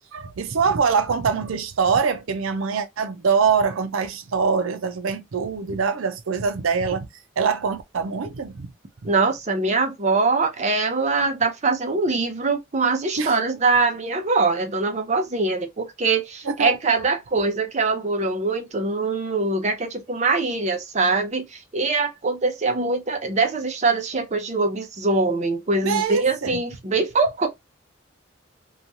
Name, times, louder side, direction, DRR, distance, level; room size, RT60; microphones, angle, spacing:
voice 1, 0.1-7.1 7.4-8.7 13.2-13.3 16.5-16.8 25.8-26.6, right 5 dB, 80° right, 0.5 m, -23 dB
voice 2, 9.0-27.5, right 3 dB, 35° right, 0.5 m, -23 dB
3.0 x 2.3 x 2.6 m
head